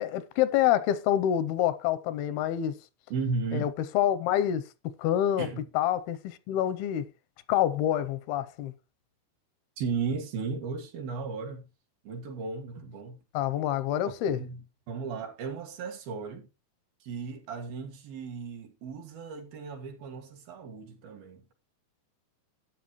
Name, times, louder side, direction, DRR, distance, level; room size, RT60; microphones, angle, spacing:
voice 1, 0.0-2.8 3.5-4.6 5.0-5.5 5.7-7.1 7.5-8.7 13.3-14.4, left 11 dB, 85° left, 2.7 m, -27 dB
voice 2, 3.1-3.7 5.4-5.6 9.8-11.7 12.1-13.2 14.3-16.5 17.0-21.4, right 5 dB, 70° right, 3.5 m, -35 dB
13.0 x 9.2 x 3.1 m
omnidirectional pair, 4.5 m